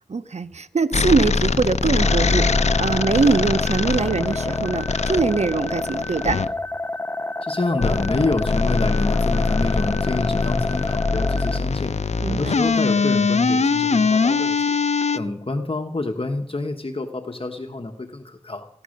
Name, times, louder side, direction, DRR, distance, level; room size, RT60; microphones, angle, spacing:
voice 1, 0.1-6.4 12.2-12.6, right 4 dB, 85° right, 0.6 m, -22 dB
sound 1, 0.9-6.5 7.8-15.2, left 4 dB, 90° left, 0.5 m, -22 dB
sound 2, 2.0-11.6, left 2 dB, 20° left, 0.5 m, -29 dB
voice 2, 7.4-12.0 12.3-14.8 15.1-18.7, left 2 dB, 55° left, 1.1 m, -27 dB
16.0 x 11.0 x 6.4 m
wide cardioid pair, 40°, 11 cm